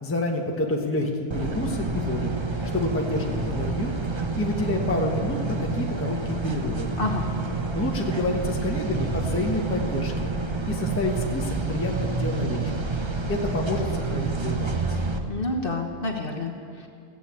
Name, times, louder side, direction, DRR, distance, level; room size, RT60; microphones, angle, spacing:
voice 1, 0.0-2.3 2.7-3.9 4.4-6.9 7.7-10.3 10.7-12.8 13.3-15.0, left 2 dB, 10° left, 0 dB, 1.0 m, -28 dB
sound 1, 1.3-15.2, right 3 dB, 30° right, 0.6 m, -28 dB
voice 2, 7.0-7.3 15.3-16.9, left 2 dB, 40° left, 1 dB, 1.3 m, -29 dB
16.0 x 8.0 x 8.4 m, 2.3 s
omnidirectional pair, 1.6 m